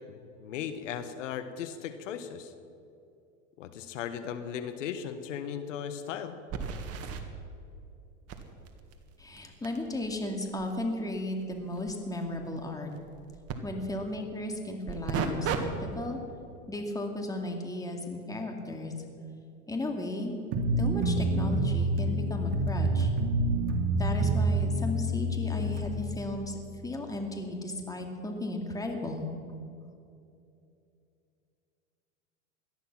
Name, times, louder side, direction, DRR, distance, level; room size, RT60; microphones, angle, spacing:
voice 1, 0.1-2.5 3.6-6.4, left 8 dB, 80° left, 10 dB, 1.3 m, -37 dB
sound 1, 4.7-4.8 5.1-5.2 6.5-7.2 8.3-13.6 14.9-15.6 16.0-16.3 20.9-21.0 22.0-22.1, right 7 dB, 40° right, 1.8 m, -37 dB
voice 2, 9.2-12.9 13.6-16.2 16.7-18.9 19.7-20.3 20.8-23.1 23.9-26.6 26.8-29.3, left 1 dB, 10° left, 3 dB, 2.2 m, -35 dB
sound 2, 20.5-25.8, right 1 dB, 70° right, 2.6 m, -27 dB
18.0 x 13.0 x 6.0 m, 2.6 s
hypercardioid pair, 110°, 37 cm